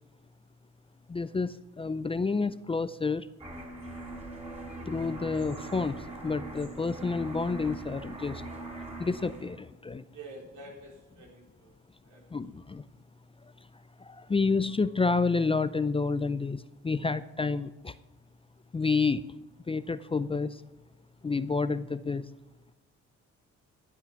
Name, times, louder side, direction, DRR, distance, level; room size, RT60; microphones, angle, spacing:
voice 1, 1.1-3.3 4.9-8.4 9.0-10.0 12.3-12.8 14.0-18.0 18.7-19.2 19.7-20.6 21.2-22.3, left 4 dB, 20° left, 14 dB, 0.5 m, -29 dB
sound 1, 3.4-9.6, right 2 dB, 20° right, 4.0 m, -41 dB
voice 2, 10.1-11.7 12.0-12.4, right 2 dB, 75° right, 0 dB, 4.2 m, -48 dB
13.0 x 8.7 x 5.7 m, 1.0 s
cardioid pair, 90°, 30 cm